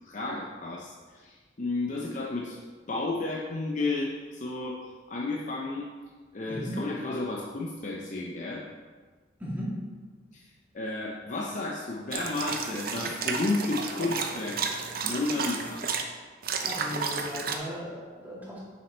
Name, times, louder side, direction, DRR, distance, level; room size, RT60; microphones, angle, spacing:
voice 1, 0.0-2.6 2.9-4.8 5.1-5.9 6.3-8.6 10.3-14.6 15.0-15.9, left 2 dB, 45° left, -2 dB, 0.6 m, -32 dB
voice 2, 6.5-6.8 9.4-9.8 16.6-18.6, equal, 10° right, -6 dB, 1.8 m, -36 dB
sound 1, 12.1-16.0 16.4-17.6, right 5 dB, 55° right, 0.6 m, -32 dB
6.3 x 5.8 x 4.3 m, 1.4 s
head